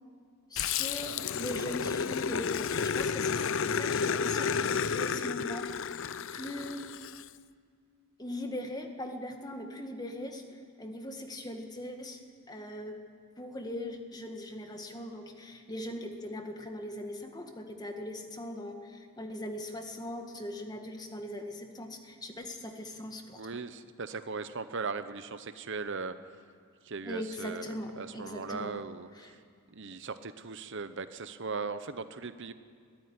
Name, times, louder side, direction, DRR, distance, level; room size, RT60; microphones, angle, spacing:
voice 1, 0.5-6.0 6.3-6.9 8.2-12.2 12.5-13.0 13.4-23.6 27.0-28.7 29.2-29.3, left 1 dB, 20° left, 4 dB, 1.8 m, -40 dB
Growling, 0.6-7.2, left 6 dB, 60° left, 0.6 m, -31 dB
voice 2, 23.4-26.1 26.8-29.4 29.7-32.5, right 4 dB, 55° right, 11 dB, 0.8 m, -38 dB
22.0 x 15.0 x 9.7 m, 2.2 s
head